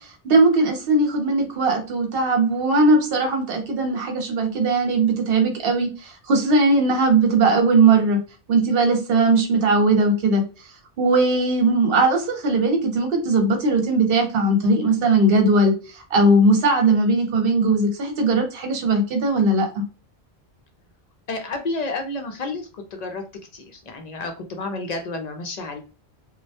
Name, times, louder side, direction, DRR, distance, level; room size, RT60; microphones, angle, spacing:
voice 1, 0.2-8.2 8.5-10.4 11.0-19.8, right 2 dB, 65° right, 4 dB, 0.9 m, -19 dB
voice 2, 21.3-23.2 23.5-25.8, left 3 dB, 55° left, 5 dB, 0.5 m, -30 dB
2.1 x 2.1 x 2.7 m, 0.34 s
omnidirectional pair, 1.1 m